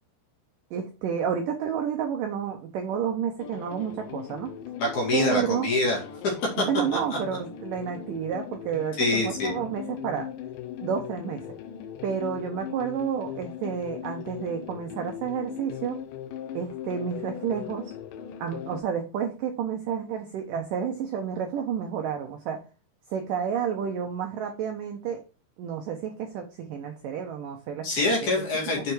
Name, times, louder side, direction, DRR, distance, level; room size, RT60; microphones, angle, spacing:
voice 1, 0.7-4.5 5.1-5.7 6.6-10.3 10.8-11.4 12.0-16.0 16.5-17.9 18.4-22.6 23.1-25.2 25.6-27.9 28.2-28.4 28.8-28.9, right 8 dB, 75° right, 4 dB, 2.0 m, -30 dB
sound 1, 3.4-18.8, left 9 dB, 85° left, 1.9 m, -39 dB
voice 2, 4.8-6.0 9.0-9.5 27.8-28.9, left 2 dB, 50° left, -1 dB, 3.2 m, -25 dB
6.9 x 5.0 x 4.6 m, 0.33 s
omnidirectional pair, 4.9 m